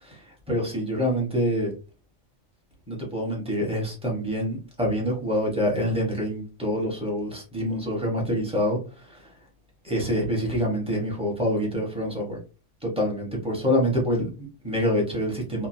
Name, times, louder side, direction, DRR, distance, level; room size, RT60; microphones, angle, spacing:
voice 1, 0.0-1.7 2.9-9.3 9.8-12.4 12.8-15.7, equal, 5° right, -2 dB, 0.7 m, -26 dB
3.0 x 2.0 x 2.6 m, 0.33 s
omnidirectional pair, 1.3 m